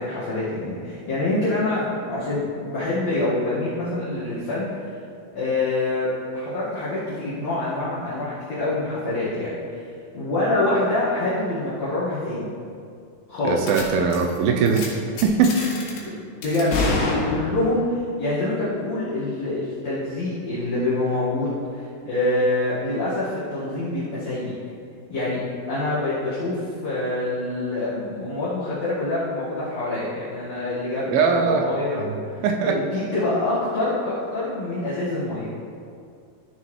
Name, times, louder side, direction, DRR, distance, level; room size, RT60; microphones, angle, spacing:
voice 1, 0.0-4.7 5.3-9.5 10.1-12.5 13.3-13.6 16.0-24.5 25.1-32.4 32.7-35.5, left 2 dB, 50° left, -10 dB, 2.5 m, -26 dB
voice 2, 13.4-15.6 31.1-31.6 32.0-32.8, right 5 dB, 80° right, 3 dB, 2.3 m, -21 dB
sound 1, 13.7-13.8 14.1-14.4 14.7-14.9 15.2-16.0 16.4-17.8, left 2 dB, 75° left, 3.3 m, -27 dB
13.5 x 7.0 x 3.2 m, 2.3 s
omnidirectional pair, 4.5 m